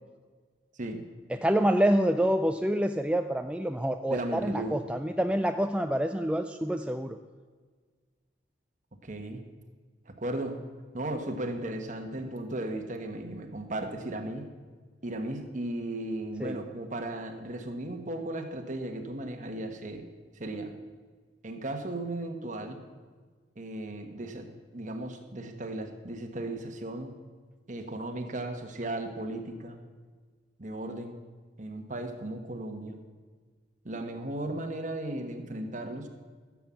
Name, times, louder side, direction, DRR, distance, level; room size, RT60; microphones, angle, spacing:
voice 1, 1.3-7.2 16.4-16.6, right 1 dB, 5° right, 6 dB, 0.3 m, -27 dB
voice 2, 4.1-4.8 9.0-9.4 10.1-10.6 10.9-14.4 15.0-20.0 20.4-20.7 21.4-22.8 23.6-24.5 24.7-27.1 27.7-29.8 30.6-31.2 31.6-33.0 33.8-36.1, right 1 dB, 40° right, 5 dB, 1.3 m, -36 dB
15.0 x 7.3 x 7.4 m, 1.5 s
head